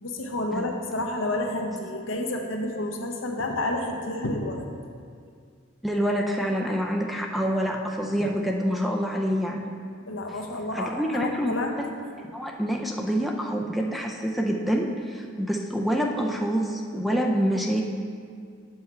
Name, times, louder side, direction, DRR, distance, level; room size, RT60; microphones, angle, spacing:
voice 1, 0.0-4.7 10.1-11.7, left 1 dB, 75° left, 2 dB, 0.9 m, -30 dB
voice 2, 5.8-9.6 10.7-11.9 12.3-17.8, equal, ahead, 0 dB, 0.4 m, -26 dB
7.9 x 5.6 x 4.4 m, 2.2 s
head